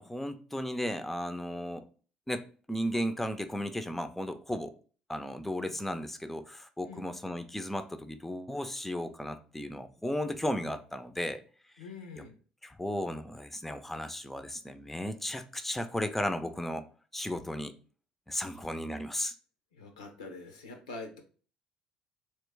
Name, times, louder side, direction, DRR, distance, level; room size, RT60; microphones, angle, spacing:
voice 1, 0.0-1.8 2.3-4.7 5.1-11.4 12.6-16.8 17.1-17.7 18.3-19.3, left 1 dB, 5° left, 9 dB, 0.5 m, -35 dB
voice 2, 11.8-12.4 18.4-18.6 19.7-21.2, left 3 dB, 90° left, 4 dB, 0.7 m, -45 dB
3.1 x 3.0 x 3.2 m, 0.40 s
hypercardioid pair, 60°, 3 cm